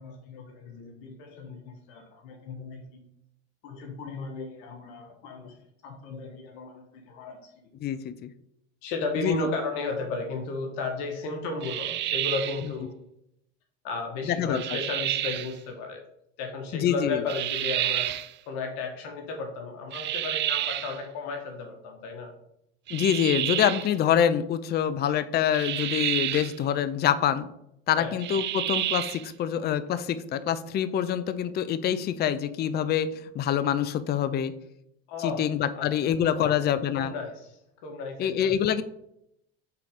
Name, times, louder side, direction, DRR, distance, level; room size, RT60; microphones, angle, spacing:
voice 1, 0.0-3.0 3.6-5.5 5.8-7.4 8.8-12.9 13.8-16.0 16.4-22.3 28.0-28.2 35.1-35.4 35.7-37.3 37.8-38.6, left 3 dB, 70° left, 2 dB, 1.3 m, -34 dB
voice 2, 7.8-8.3 9.2-9.3 14.2-14.8 16.7-17.2 22.9-27.5 27.9-34.5 35.2-37.1 38.2-38.8, left 9 dB, 35° left, 14 dB, 0.5 m, -26 dB
sound 1, 11.6-12.7 14.5-15.5 17.3-18.3 19.9-21.0 22.9-23.9 25.5-26.6 28.2-29.3, right 14 dB, 40° right, 0.4 m, -30 dB
5.6 x 3.9 x 5.0 m, 0.78 s
hypercardioid pair, 85°, 31 cm